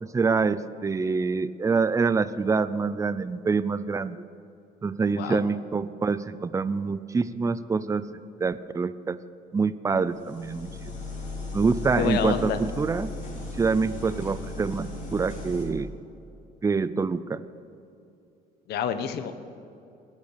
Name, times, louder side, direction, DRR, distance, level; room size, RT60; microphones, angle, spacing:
voice 1, 0.0-4.2 4.8-8.0 8.4-9.2 9.5-10.7 11.5-13.1 13.6-15.9 16.6-17.4, right 4 dB, 20° right, 14 dB, 0.5 m, -26 dB
sound 1, 10.1-15.7, left 2 dB, 50° left, 4.6 m, -36 dB
voice 2, 12.0-12.6 18.7-19.3, left 8 dB, 75° left, 10 dB, 1.2 m, -28 dB
20.5 x 8.3 x 6.8 m, 2.6 s
cardioid pair, 110°, 17 cm